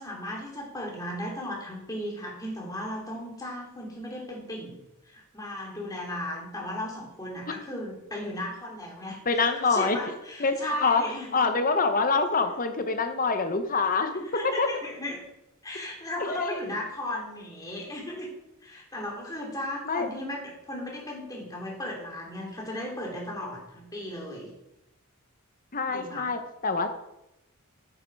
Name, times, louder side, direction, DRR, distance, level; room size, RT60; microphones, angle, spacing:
voice 1, 0.0-11.4 14.2-15.2 15.6-18.3 18.6-24.5 25.9-26.3, left 1 dB, 15° left, -2 dB, 2.9 m, -36 dB
voice 2, 9.3-10.0 10.4-11.0 11.3-14.7 16.2-16.6 19.9-20.1 25.7-26.9, left 4 dB, 40° left, 8 dB, 1.1 m, -25 dB
9.4 x 8.9 x 4.8 m, 0.87 s
head